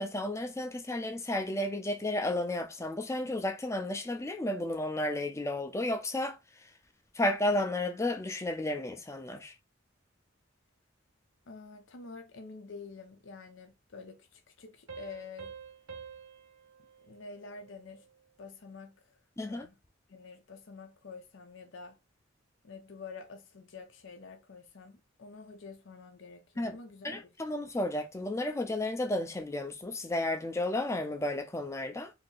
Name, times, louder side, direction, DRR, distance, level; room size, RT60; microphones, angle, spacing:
voice 1, 0.0-6.4 7.2-9.5 19.4-19.7 26.6-26.8 27.0-32.1, left 1 dB, 15° left, 0.5 m, -32 dB
voice 2, 11.5-15.5 17.0-18.1 18.4-19.2 19.4-19.8 20.1-22.0 22.6-27.3, left 4 dB, 70° left, 0.7 m, -48 dB
sound 1, 14.9-18.2, right 6 dB, 85° right, 0.7 m, -49 dB
2.8 x 2.7 x 3.8 m
head